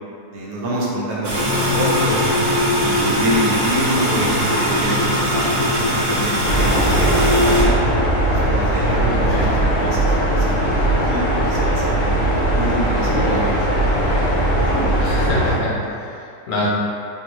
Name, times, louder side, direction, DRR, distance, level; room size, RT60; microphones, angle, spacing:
voice 1, 0.3-2.3 2.8-5.6 5.9-7.8 8.1-12.2 12.5-15.5, right 1 dB, 80° right, -5 dB, 1.2 m, -27 dB
sound 1, 1.2-7.6, equal, 45° right, 0.8 m, -20 dB
sound 2, 6.4-15.5, right 1 dB, 90° left, 1.3 m, -19 dB
voice 2, 8.8-9.6 15.0-16.7, left 1 dB, 65° left, -6 dB, 1.1 m, -25 dB
3.8 x 2.2 x 2.9 m, 2.4 s
omnidirectional pair, 1.6 m